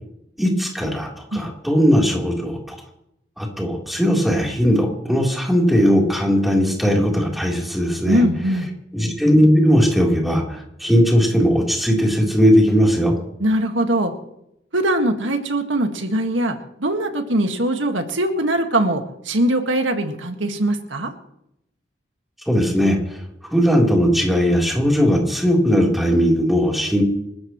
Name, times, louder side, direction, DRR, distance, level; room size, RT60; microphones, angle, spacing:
voice 1, 0.4-2.8 3.4-8.2 8.9-13.1 22.5-23.2 23.5-27.0, equal, ahead, -2 dB, 3.6 m, -18 dB
voice 2, 8.1-8.7 13.4-14.1 14.7-21.1, right 1 dB, 90° right, 5 dB, 1.9 m, -21 dB
28.0 x 14.0 x 3.2 m, 0.80 s
head